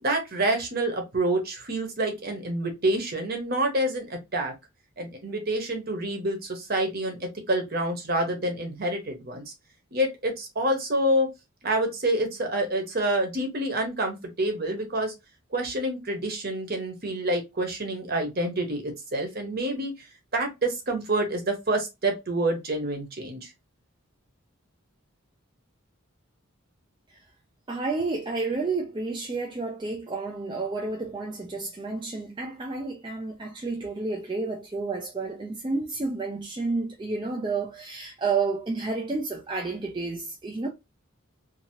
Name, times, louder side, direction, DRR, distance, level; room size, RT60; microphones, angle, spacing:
voice 1, 0.0-4.5 5.0-9.4 9.9-11.3 11.6-15.1 15.5-20.1 20.3-23.5, right 1 dB, 45° right, 0.9 m, -27 dB
voice 2, 27.7-40.7, right 3 dB, 20° right, 0.4 m, -30 dB
2.7 x 2.6 x 2.8 m
head